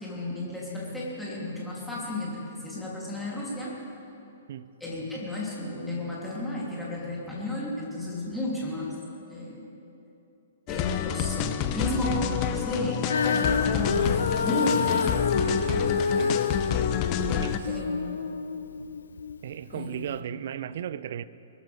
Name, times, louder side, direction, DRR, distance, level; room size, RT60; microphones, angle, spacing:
voice 1, 0.0-3.7 4.8-9.0 9.3-9.7 10.7-14.2 14.4-15.4 17.7-18.1 19.7-20.0, left 1 dB, 5° left, 3.2 m, -33 dB
sound 1, 10.7-17.6, left 10 dB, 35° left, 0.7 m, -29 dB
Female singing, 13.0-19.4 20.1-20.2, left 5 dB, 70° left, 0.6 m, -28 dB
Thump thud, 13.8-14.4 17.1-17.7, right 1 dB, 35° right, 2.9 m, -36 dB
voice 2, 15.3-16.4 17.4-17.8 19.4-21.2, right 10 dB, 55° right, 0.5 m, -36 dB
22.5 x 14.0 x 3.5 m
figure-of-eight pair, 115°, 0 cm